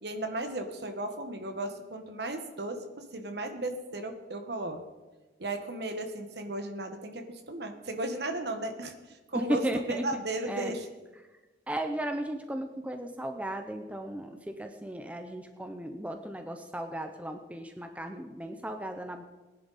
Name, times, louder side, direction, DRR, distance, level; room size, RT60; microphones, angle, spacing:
voice 1, 0.0-4.8 5.4-10.9, right 1 dB, 60° right, 6 dB, 1.4 m, -35 dB
voice 2, 9.3-10.1 10.5-10.7 11.7-19.2, right 1 dB, 5° right, 6 dB, 0.6 m, -35 dB
19.0 x 10.5 x 4.2 m, 1.2 s
head